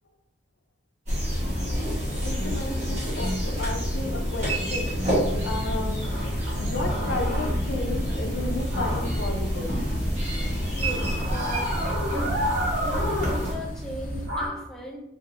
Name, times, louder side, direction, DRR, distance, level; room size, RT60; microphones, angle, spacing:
sound 1, 1.1-13.5, equal, 35° right, 1.1 m, -29 dB
voice 1, 2.2-5.0 5.4-6.1 6.5-9.7, left 2 dB, 75° left, 3 dB, 0.6 m, -33 dB
sound 2, 4.2-14.5, equal, 65° right, 1.3 m, -32 dB
sound 3, 4.9-14.3, equal, 45° left, 0.8 m, -34 dB
voice 2, 10.7-11.7 12.1-12.4 12.8-15.0, left 1 dB, ahead, 0 dB, 0.3 m, -37 dB
5.0 x 2.7 x 2.5 m, 0.91 s
head